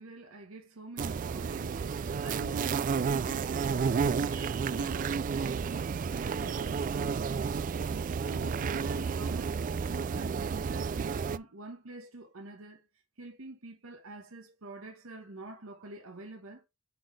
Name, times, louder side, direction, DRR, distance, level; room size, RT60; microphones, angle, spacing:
voice 1, 0.0-7.5 7.9-12.8 13.2-16.6, right 2 dB, 90° right, 1.1 m, -47 dB
sound 1, 1.0-11.4, right 5 dB, 40° right, 0.3 m, -31 dB
7.8 x 4.2 x 3.2 m
head